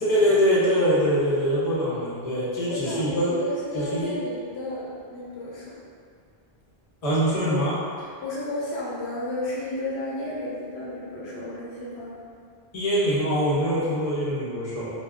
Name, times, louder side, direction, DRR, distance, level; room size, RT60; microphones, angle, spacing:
voice 1, 0.1-3.3 3.7-4.1 7.0-7.8 12.7-14.9, equal, 40° left, -9 dB, 0.8 m, -23 dB
voice 2, 2.7-5.8 8.0-12.2, left 1 dB, 85° left, -6 dB, 0.9 m, -33 dB
2.3 x 2.3 x 3.4 m, 2.3 s
omnidirectional pair, 1.1 m